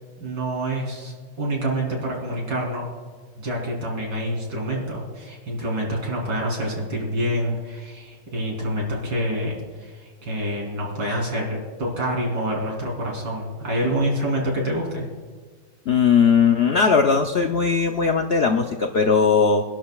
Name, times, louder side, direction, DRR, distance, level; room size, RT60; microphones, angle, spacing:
voice 1, 0.2-2.9 3.4-15.1, right 1 dB, 75° right, -2 dB, 4.1 m, -27 dB
voice 2, 15.9-19.6, left 5 dB, 70° left, 4 dB, 0.5 m, -18 dB
25.0 x 11.5 x 2.3 m, 1.5 s
omnidirectional pair, 1.9 m